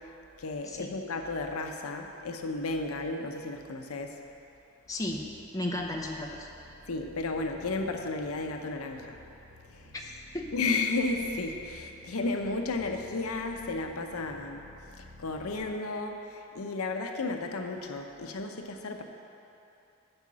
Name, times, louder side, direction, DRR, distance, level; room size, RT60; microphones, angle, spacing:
voice 1, 0.4-4.2 6.9-9.2 10.5-14.7 15.0-19.0, left 3 dB, 85° left, 4 dB, 0.7 m, -33 dB
sound 1, 4.8-15.6, left 2 dB, 40° right, 1.8 m, -53 dB
voice 2, 4.9-6.5 9.9-10.5, left 1 dB, 15° left, 0 dB, 0.7 m, -35 dB
7.9 x 5.6 x 7.4 m, 2.8 s
head